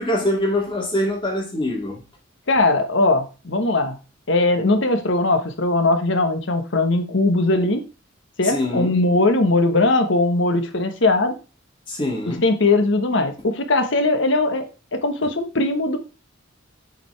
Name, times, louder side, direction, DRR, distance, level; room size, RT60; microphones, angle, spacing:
voice 1, 0.0-2.0 8.4-8.9 11.9-12.4, left 1 dB, 25° left, 2.6 m, -24 dB
voice 2, 2.5-4.0 4.3-7.8 8.4-11.4 12.3-16.0, left 2 dB, 65° left, 1.3 m, -20 dB
8.0 x 5.1 x 3.4 m
head